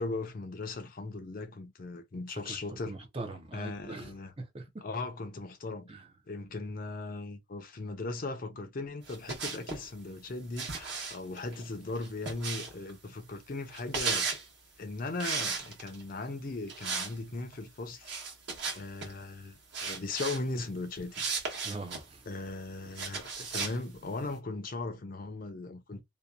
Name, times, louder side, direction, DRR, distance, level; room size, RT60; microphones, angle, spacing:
voice 1, 0.0-3.0 3.5-4.3 4.8-5.9 6.3-14.3 14.8-18.1 18.7-21.6 22.3-26.0, left 3 dB, 45° left, 0.5 m, -38 dB
voice 2, 2.3-4.8 5.9-6.1 21.6-22.3, right 2 dB, 25° right, 0.5 m, -42 dB
sound 1, 9.1-9.8 10.6-12.9 13.7-14.4 15.2-16.0 16.7-17.1 17.4-17.5 18.0-19.1 19.7-20.4 21.1-22.0 22.9-23.8, right 5 dB, 55° right, 1.0 m, -35 dB
2.7 x 2.2 x 2.3 m
head